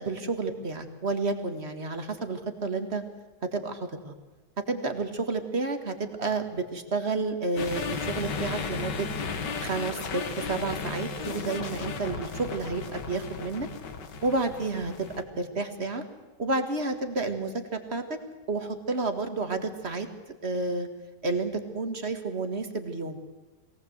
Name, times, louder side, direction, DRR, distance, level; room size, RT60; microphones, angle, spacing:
voice 1, 0.0-3.0 3.4-4.1 4.7-9.1 9.6-13.7 14.2-16.0 16.4-18.2 18.5-20.1 20.4-20.9 21.2-23.2, right 3 dB, 40° right, 7 dB, 2.0 m, -30 dB
sound 1, 7.6-15.2, left 5 dB, 85° left, 2.1 m, -35 dB
22.5 x 18.0 x 8.0 m, 1.3 s
omnidirectional pair, 1.8 m